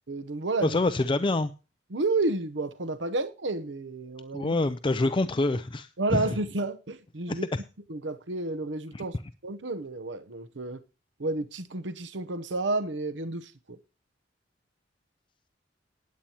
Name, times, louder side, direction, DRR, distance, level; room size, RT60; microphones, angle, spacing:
voice 1, 0.1-0.8 1.9-4.6 6.0-7.5 7.9-9.2 9.4-10.8 11.2-13.8, right 2 dB, 90° right, 0.9 m, -31 dB
voice 2, 0.6-1.5 4.3-6.3 7.3-7.6 8.9-9.0, left 2 dB, 30° left, 0.5 m, -26 dB
19.0 x 8.7 x 2.9 m
head